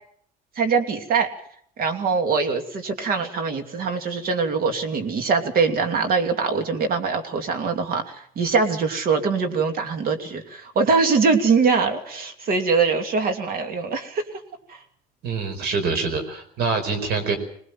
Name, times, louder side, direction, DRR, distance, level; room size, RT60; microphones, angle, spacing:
voice 1, 0.6-1.3 1.8-14.2 14.7-14.8, right 4 dB, 60° right, 6 dB, 2.8 m, -23 dB
voice 2, 15.2-17.4, right 4 dB, 75° right, 8 dB, 5.0 m, -25 dB
22.5 x 19.0 x 7.5 m, 0.66 s
cardioid pair, 110°, 17 cm